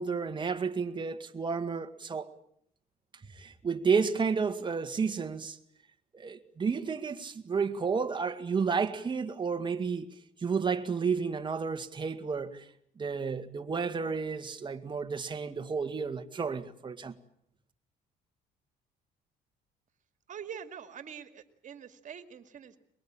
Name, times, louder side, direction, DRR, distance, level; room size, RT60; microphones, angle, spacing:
voice 1, 0.0-2.3 3.3-5.6 6.1-10.1 10.4-12.7 13.0-17.1, right 5 dB, 25° right, 2.1 m, -31 dB
voice 2, 20.3-22.8, right 8 dB, 50° right, 2.4 m, -44 dB
23.0 x 22.5 x 8.9 m
cardioid pair, 110°, 17 cm